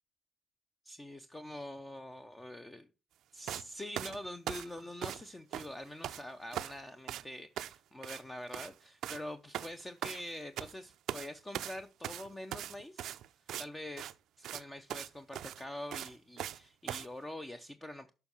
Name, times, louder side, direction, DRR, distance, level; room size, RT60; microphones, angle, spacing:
voice 1, 0.8-2.9 3.3-13.2 13.6-18.1, left 1 dB, 20° left, 0.6 m, -45 dB
sound 1, 3.5-3.7 4.0-5.3 5.5-6.2 6.5-6.8 7.1-7.3 7.6-7.8 8.0-8.2 8.5-8.7 9.0-9.2 9.5-10.7 11.1-11.3 11.5-13.7 14.0-14.1 14.4-14.6 14.9-15.1 15.3-16.6 16.9-17.1, right 11 dB, 80° right, 0.4 m, -40 dB
6.8 x 5.4 x 5.4 m
cardioid pair, 90°, 0 cm